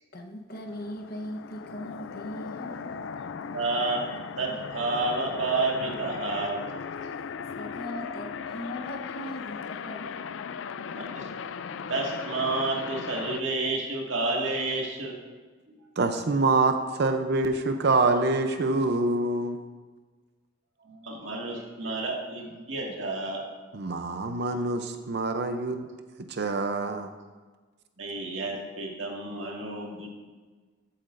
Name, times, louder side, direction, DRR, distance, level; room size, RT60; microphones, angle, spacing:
voice 1, 0.1-2.8 7.5-10.1, left 1 dB, 50° left, 2 dB, 1.0 m, -39 dB
sound 1, 0.7-13.4, left 6 dB, 70° left, 0.4 m, -37 dB
voice 2, 3.5-4.0 4.4-6.7 10.9-11.3 11.7-15.2 15.7-15.8 20.8-23.4 28.0-30.1, right 2 dB, 75° right, -1 dB, 2.0 m, -30 dB
voice 3, 16.0-19.6 23.7-25.9 26.3-27.1, right 3 dB, 55° right, 7 dB, 0.6 m, -25 dB
14.0 x 8.6 x 2.6 m, 1.4 s
head